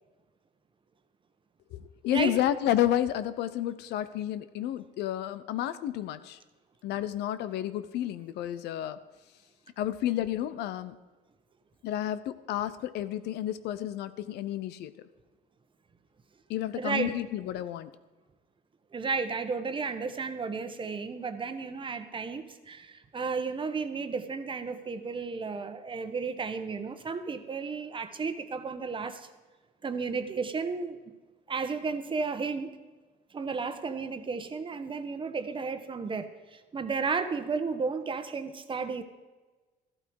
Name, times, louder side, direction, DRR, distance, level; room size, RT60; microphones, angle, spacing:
voice 1, 1.7-6.4 6.8-9.0 9.8-11.0 11.8-14.9 16.5-17.9, left 12 dB, 80° left, 13 dB, 0.8 m, -31 dB
voice 2, 16.7-17.2 18.9-29.3 29.8-31.0 31.5-32.8 33.3-39.0, right 4 dB, 30° right, 9 dB, 1.1 m, -33 dB
14.0 x 12.0 x 4.7 m, 1.3 s
cardioid pair, 110°, 17 cm